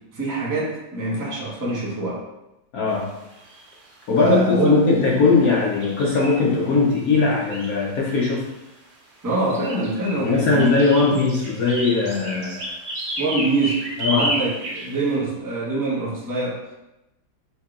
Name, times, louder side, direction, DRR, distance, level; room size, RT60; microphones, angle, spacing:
voice 1, 0.1-2.2 4.2-4.8 9.2-11.1 13.2-16.6, right 2 dB, 15° right, -6 dB, 0.7 m, -24 dB
voice 2, 2.7-3.2 4.1-8.5 10.1-12.8 14.0-14.3, left 4 dB, 65° left, -3 dB, 0.9 m, -20 dB
sound 1, 3.3-3.8 5.0-5.1 5.4-6.8 7.2-8.6 9.3-15.1, right 1 dB, 60° right, 1.3 m, -32 dB
5.5 x 3.7 x 2.4 m, 0.92 s
omnidirectional pair, 2.1 m